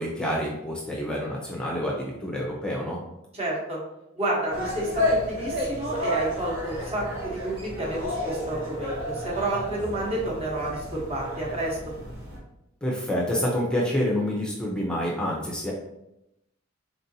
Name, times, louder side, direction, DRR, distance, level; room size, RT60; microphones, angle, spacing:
voice 1, 0.0-3.0 12.8-15.7, equal, 5° left, -3 dB, 0.6 m, -28 dB
voice 2, 3.3-3.8 4.2-11.8, right 1 dB, 30° right, -3 dB, 1.1 m, -30 dB
sound 1, 4.5-12.4, left 1 dB, 60° right, 1.3 m, -31 dB
4.1 x 3.8 x 2.7 m, 0.87 s
head